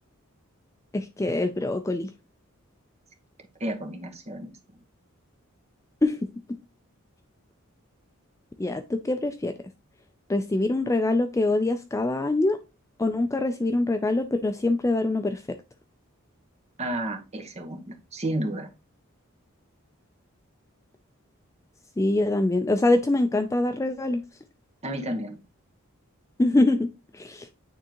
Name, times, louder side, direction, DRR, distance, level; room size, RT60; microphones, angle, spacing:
voice 1, 0.9-2.1 6.0-6.2 8.6-9.5 10.3-12.6 13.0-15.4 22.0-24.2 26.4-26.9 27.1-27.5, left 2 dB, 15° left, 8 dB, 0.3 m, -24 dB
voice 2, 3.6-4.5 16.8-18.7 24.8-25.4, right 1 dB, 30° right, 3 dB, 1.1 m, -31 dB
9.1 x 3.6 x 2.9 m, 0.29 s
head